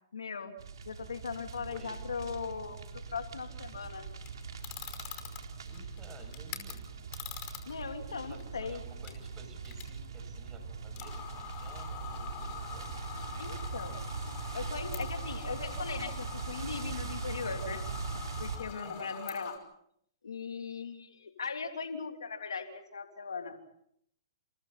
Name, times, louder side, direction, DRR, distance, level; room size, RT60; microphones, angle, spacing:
voice 1, 0.1-0.5 0.8-2.8 3.1-4.1 7.7-8.8 13.4-14.0 14.5-17.8 18.4-19.6 20.2-23.7, left 5 dB, 85° left, 5 dB, 3.1 m, -39 dB
sound 1, 0.6-18.6, right 5 dB, 80° right, 3.5 m, -41 dB
voice 2, 1.7-2.0 5.6-6.8 8.3-13.1 18.8-19.1, right 3 dB, 20° right, 6 dB, 6.8 m, -55 dB
sound 2, 4.2-6.7 7.1-7.9 8.2-8.4 8.9-9.1 9.6-9.8 10.2-10.3 11.0-19.6, left 10 dB, 40° left, 5.1 m, -44 dB
29.0 x 29.0 x 4.2 m, 0.70 s
hypercardioid pair, 130°, 2 cm